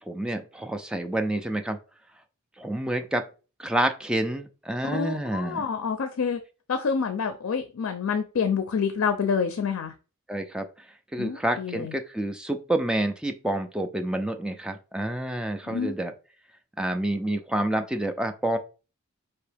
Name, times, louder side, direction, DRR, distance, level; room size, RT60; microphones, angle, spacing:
voice 1, 0.1-1.8 2.6-3.2 3.6-5.6 10.3-10.7 11.1-16.1 16.8-18.6, right 1 dB, 5° right, 5 dB, 0.4 m, -28 dB
voice 2, 4.8-6.4 6.7-9.9 11.2-11.9 15.7-16.0, left 6 dB, 75° left, 9 dB, 0.5 m, -27 dB
4.5 x 2.9 x 3.3 m, 0.34 s
head